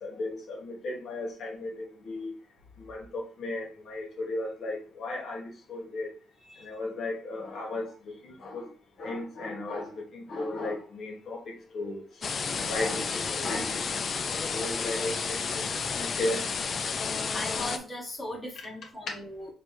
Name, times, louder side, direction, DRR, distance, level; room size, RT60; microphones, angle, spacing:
voice 1, 0.0-2.3 2.8-6.1 6.6-8.7 9.0-12.0 12.5-13.8 14.5-16.6 17.0-17.2, left 2 dB, 65° left, 1 dB, 1.7 m, -35 dB
sound 1, 12.2-17.8, left 5 dB, 45° left, 0.5 m, -31 dB
voice 2, 17.3-19.5, left 1 dB, 15° left, -1 dB, 1.4 m, -38 dB
4.2 x 2.6 x 4.7 m, 0.38 s
cardioid pair, 90°, 0 cm